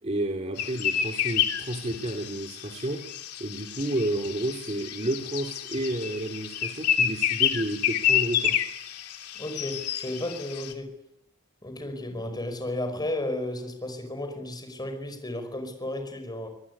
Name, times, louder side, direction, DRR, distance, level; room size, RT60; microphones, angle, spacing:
voice 1, 0.0-3.0 3.4-8.6, right 1 dB, 30° right, 4 dB, 2.6 m, -31 dB
sound 1, 0.6-10.7, left 9 dB, 90° left, 2.8 m, -29 dB
voice 2, 9.3-10.9 11.6-16.5, left 1 dB, 20° left, 6 dB, 5.4 m, -33 dB
25.0 x 20.0 x 9.8 m, 0.76 s
head